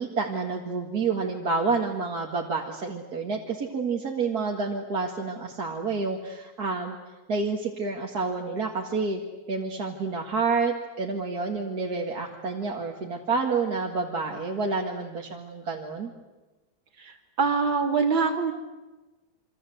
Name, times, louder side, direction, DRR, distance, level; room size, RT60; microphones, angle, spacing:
voice 1, 0.0-7.0 7.3-9.2 9.5-16.1, right 4 dB, 50° right, 0 dB, 2.5 m, -29 dB
voice 2, 17.0-18.5, right 5 dB, 75° right, 5 dB, 3.4 m, -24 dB
27.5 x 25.5 x 8.0 m, 1.1 s
omnidirectional pair, 2.1 m